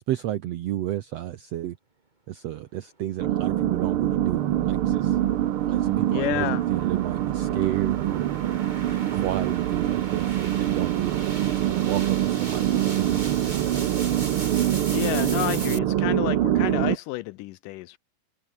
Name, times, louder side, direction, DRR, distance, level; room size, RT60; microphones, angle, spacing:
voice 1, 0.1-1.8 2.3-5.2 5.6-8.3 9.1-13.7, right 13 dB, 70° right, 1.6 m, -32 dB
sound 1, 3.2-17.0, right 12 dB, 85° right, 1.2 m, -24 dB
sound 2, 3.7-15.8, right 2 dB, 15° right, 2.1 m, -41 dB
voice 2, 6.1-6.6 14.9-18.0, left 18 dB, 80° left, 2.1 m, -30 dB
omnidirectional pair, 3.9 m